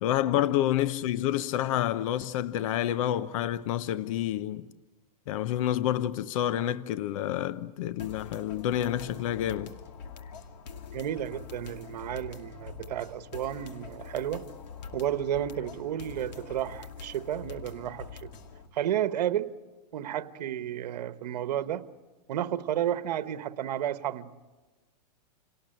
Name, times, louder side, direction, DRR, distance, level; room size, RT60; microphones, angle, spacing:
voice 1, 0.0-4.7 5.3-9.8, left 12 dB, 50° left, 0.8 m, -28 dB
sound 1, 8.0-18.7, left 6 dB, 80° left, 2.5 m, -44 dB
voice 2, 10.9-14.5 14.9-18.3 18.7-19.5 19.9-21.9 22.3-24.3, right 11 dB, 70° right, 1.3 m, -32 dB
29.0 x 18.5 x 9.0 m
supercardioid pair, 150°, 21 cm